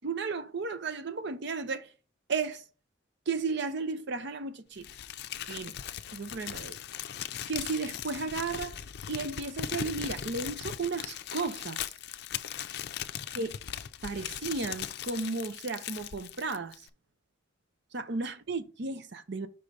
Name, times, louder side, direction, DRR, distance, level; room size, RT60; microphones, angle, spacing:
voice 1, 0.0-1.9 2.3-2.6 3.3-4.8 5.5-5.8 6.1-6.8 7.5-8.8 9.1-11.8 13.3-13.6 14.0-16.9 17.9-19.5, right 4 dB, 60° right, 0.7 m, -34 dB
Crumpling crinkling, 4.8-16.9, left 10 dB, 60° left, 0.4 m, -39 dB
5.5 x 4.9 x 4.0 m
head